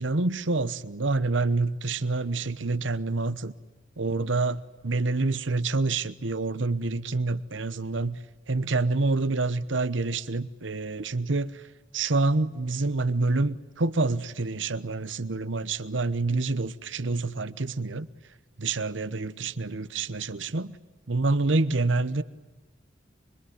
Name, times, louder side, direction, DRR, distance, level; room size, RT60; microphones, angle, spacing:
voice 1, 0.0-3.5 4.0-8.2 8.5-11.6 11.9-18.1 18.6-20.7 21.1-22.2, right 3 dB, 85° right, 15 dB, 1.1 m, -27 dB
25.0 x 22.5 x 9.5 m, 1.1 s
head